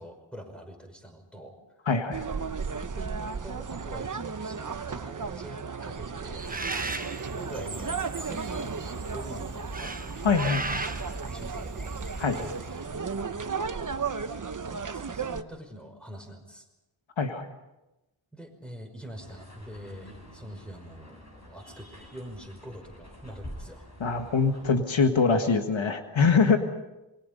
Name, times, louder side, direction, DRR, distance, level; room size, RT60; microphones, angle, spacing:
voice 1, 0.0-1.5 2.9-9.9 11.3-11.9 12.3-13.6 14.2-16.7 18.3-23.9, right 1 dB, ahead, 4 dB, 5.3 m, -45 dB
voice 2, 1.9-2.3 10.2-10.8 12.2-12.4 17.2-17.5 24.0-26.6, left 5 dB, 75° left, 6 dB, 1.7 m, -24 dB
sound 1, 2.1-15.4, right 5 dB, 40° right, 1.0 m, -35 dB
Bird, 6.4-12.8, right 2 dB, 20° right, 1.1 m, -37 dB
sound 2, 19.1-24.8, equal, 35° left, 7.4 m, -47 dB
27.5 x 23.0 x 5.4 m, 0.98 s
wide cardioid pair, 90°, 47 cm